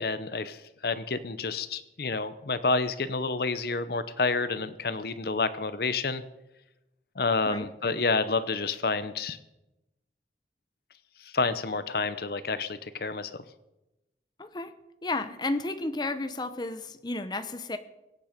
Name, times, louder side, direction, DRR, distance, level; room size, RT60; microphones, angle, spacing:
voice 1, 0.0-6.2 7.2-9.4 11.2-13.4, left 4 dB, 60° left, 13 dB, 0.7 m, -29 dB
voice 2, 14.4-14.7 15.0-17.8, left 2 dB, 25° left, 9 dB, 0.8 m, -32 dB
23.5 x 9.0 x 5.1 m, 0.96 s
head